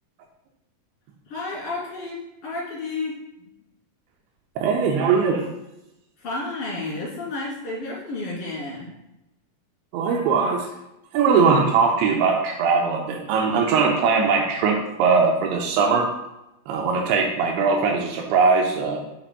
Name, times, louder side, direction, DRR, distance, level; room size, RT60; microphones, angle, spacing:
voice 1, 1.3-3.5 6.2-8.9, left 2 dB, 35° left, -6 dB, 2.9 m, -31 dB
voice 2, 4.6-5.5 9.9-10.7 11.1-16.1 16.7-19.0, right 5 dB, 85° right, 1 dB, 2.8 m, -20 dB
9.9 x 5.9 x 2.2 m, 0.89 s
omnidirectional pair, 5.5 m